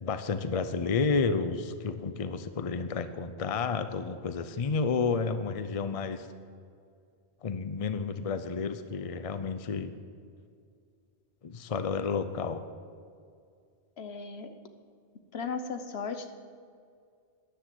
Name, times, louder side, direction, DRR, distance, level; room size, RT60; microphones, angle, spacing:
voice 1, 0.0-6.3 7.4-9.9 11.4-12.6, left 4 dB, 40° left, 10 dB, 0.7 m, -31 dB
voice 2, 14.0-14.6 15.3-16.3, left 5 dB, 75° left, 8 dB, 1.3 m, -36 dB
13.5 x 10.5 x 7.8 m, 2.2 s
omnidirectional pair, 1.1 m